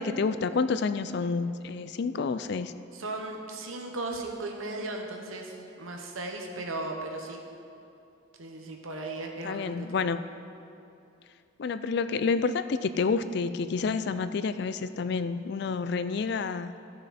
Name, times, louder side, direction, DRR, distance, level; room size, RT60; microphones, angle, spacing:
voice 1, 0.0-2.7 9.4-10.2 11.6-16.7, left 4 dB, 55° left, 12 dB, 0.3 m, -29 dB
voice 2, 2.9-7.4 8.4-10.1, right 2 dB, 85° right, 2 dB, 1.2 m, -37 dB
14.5 x 6.6 x 4.2 m, 2.6 s
head